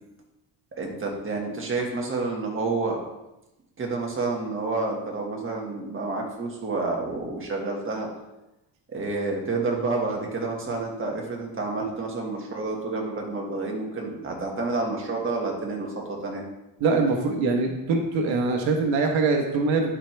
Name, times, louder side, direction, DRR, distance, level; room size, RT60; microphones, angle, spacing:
voice 1, 0.7-3.0 3.8-8.1 8.9-16.4, right 3 dB, 30° right, 0 dB, 1.7 m, -29 dB
voice 2, 16.8-20.0, right 3 dB, 90° right, 3 dB, 1.3 m, -23 dB
11.5 x 4.8 x 3.4 m, 0.95 s
cardioid pair, 135°, 45 cm